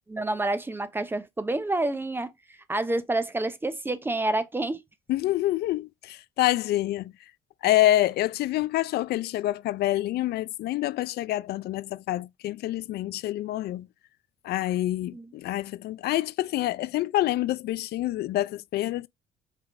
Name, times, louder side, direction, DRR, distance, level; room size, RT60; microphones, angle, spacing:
voice 1, 0.1-2.3 2.7-4.8 15.1-15.3, right 2 dB, 10° right, 0.6 m, -28 dB
voice 2, 5.1-7.1 7.6-13.9 14.4-19.1, left 15 dB, 70° left, 0.5 m, -27 dB
5.4 x 3.8 x 4.9 m
cardioid pair, 130°, 17 cm